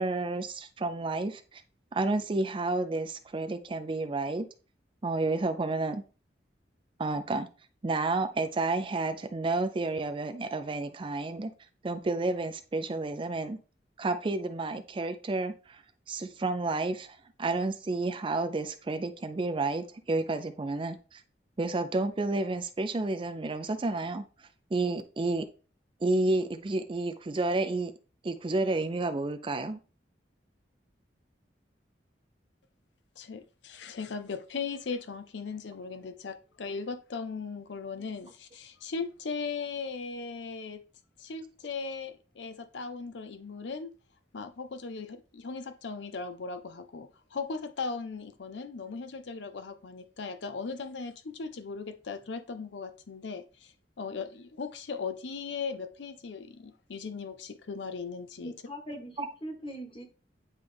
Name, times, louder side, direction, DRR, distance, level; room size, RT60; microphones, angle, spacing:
voice 1, 0.0-1.6 1.9-4.5 5.0-6.0 7.0-7.5 7.8-11.5 11.8-13.6 14.0-15.8 16.1-21.2 21.6-24.2 24.7-25.4 26.0-27.9 28.2-29.8 59.2-59.3, right 2 dB, 30° right, 0.4 m, -30 dB
voice 2, 33.2-40.8 41.2-43.9 44.3-58.5, left 4 dB, 80° left, 0.6 m, -38 dB
voice 3, 58.4-60.0, equal, 30° left, 1.5 m, -41 dB
9.6 x 3.2 x 3.4 m
head